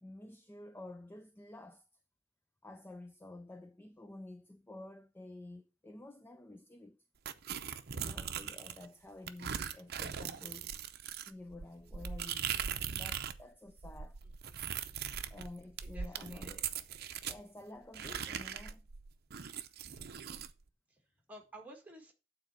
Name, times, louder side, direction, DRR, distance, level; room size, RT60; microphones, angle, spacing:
voice 1, 0.0-1.9 2.6-7.0 7.9-10.7 11.1-12.6 12.9-14.2 15.3-16.7 17.3-18.9, left 2 dB, 10° left, 0.4 m, -50 dB
sound 1, 7.3-8.9 9.3-13.4 13.7-17.4 17.9-20.5, right 8 dB, 55° right, 0.7 m, -40 dB
voice 2, 15.8-16.6 20.0-20.5 21.3-22.1, right 1 dB, 10° right, 1.8 m, -54 dB
9.0 x 4.2 x 6.6 m
head